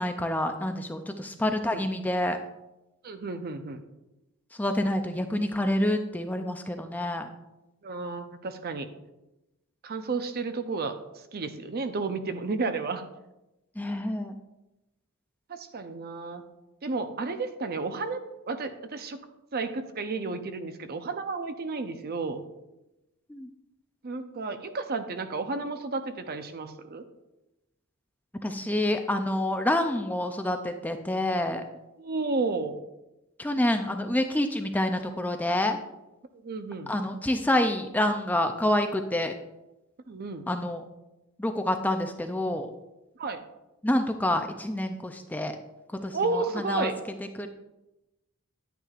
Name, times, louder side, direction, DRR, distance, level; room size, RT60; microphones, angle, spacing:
voice 1, 0.0-2.4 4.5-7.3 13.8-14.4 23.3-23.5 28.4-31.6 33.4-35.8 36.9-39.3 40.5-40.8 41.4-42.7 43.8-45.5 46.0-46.9 47.4-47.5, left 1 dB, 10° left, 6 dB, 0.4 m, -27 dB
voice 2, 3.0-3.8 7.8-8.9 9.8-11.0 11.3-13.0 15.5-16.4 16.8-19.3 19.5-22.4 24.0-27.0 32.0-32.8 36.4-36.9 40.1-40.5 43.2-43.4 46.1-46.9, right 3 dB, 45° right, 8 dB, 0.6 m, -32 dB
10.0 x 9.1 x 2.4 m, 0.96 s
head